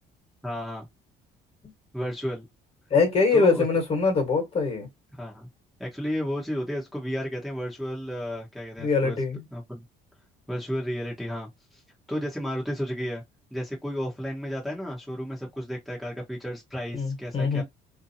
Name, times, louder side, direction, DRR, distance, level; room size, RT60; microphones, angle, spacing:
voice 1, 0.4-0.9 1.9-2.4 3.3-3.6 5.1-5.5 5.8-9.2 9.5-9.8 10.5-11.8 12.1-13.2 13.5-17.6, equal, ahead, 1.0 m, -32 dB
voice 2, 2.9-4.9 8.8-9.4 16.9-17.6, left 4 dB, 35° left, 1.4 m, -23 dB
2.7 x 2.4 x 2.7 m
cardioid pair, 110°, 17 cm